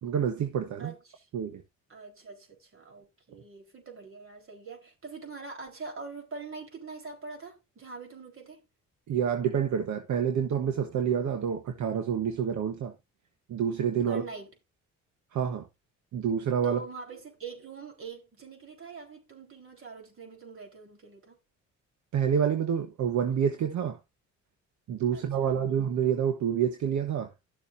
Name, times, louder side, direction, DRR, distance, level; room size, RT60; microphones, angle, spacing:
voice 1, 0.0-0.9 1.3-1.6 9.1-12.9 13.5-14.2 15.3-15.7 16.1-16.8 22.1-24.0 24.9-27.3, right 8 dB, 70° right, 1.2 m, -28 dB
voice 2, 0.8-1.3 1.9-8.6 14.1-14.5 16.6-21.4 25.1-25.6, right 4 dB, 45° right, 4.2 m, -44 dB
12.5 x 7.0 x 2.6 m
cardioid pair, 90°, 30 cm